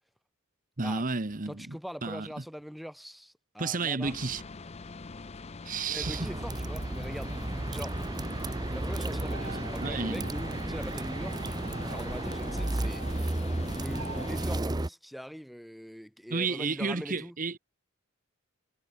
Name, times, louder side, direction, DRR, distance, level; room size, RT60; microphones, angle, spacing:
voice 1, 0.8-2.3 3.6-4.4 5.6-6.3 9.8-10.3 16.3-17.6, right 4 dB, 40° right, 1.1 m, -32 dB
voice 2, 1.5-4.1 5.9-7.3 7.7-8.0 8.7-11.6 11.8-13.0 13.7-17.4, equal, ahead, 1.4 m, -42 dB
sound 1, 4.0-14.6, left 3 dB, 30° left, 0.5 m, -44 dB
sound 2, 6.0-14.9, right 2 dB, 20° right, 0.6 m, -33 dB
sound 3, 9.3-14.4, right 3 dB, 70° right, 4.6 m, -46 dB
head